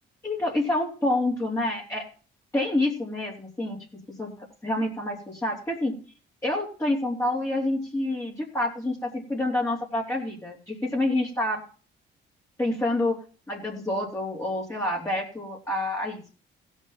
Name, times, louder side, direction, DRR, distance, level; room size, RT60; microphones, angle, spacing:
voice 1, 0.2-2.1 2.5-3.8 4.2-5.9 6.4-11.6 12.6-13.2 13.5-16.2, left 1 dB, 15° left, -5 dB, 3.8 m, -27 dB
16.5 x 6.4 x 5.9 m, 0.38 s
cardioid pair, 90°, 20 cm